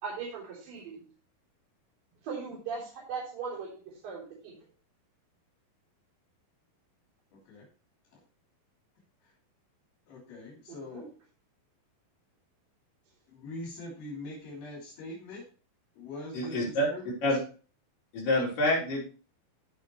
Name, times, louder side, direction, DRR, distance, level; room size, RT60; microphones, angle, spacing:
voice 1, 0.0-1.0 2.2-4.5 10.7-11.0, right 5 dB, 70° right, -7 dB, 5.3 m, -39 dB
voice 2, 10.1-11.0 13.3-15.4 15.9-17.4, left 2 dB, 80° left, -4 dB, 5.0 m, -43 dB
voice 3, 16.3-16.9 17.2-17.4 18.1-19.1, left 1 dB, 65° left, -4 dB, 5.0 m, -27 dB
15.5 x 5.4 x 3.1 m, 0.37 s
omnidirectional pair, 4.2 m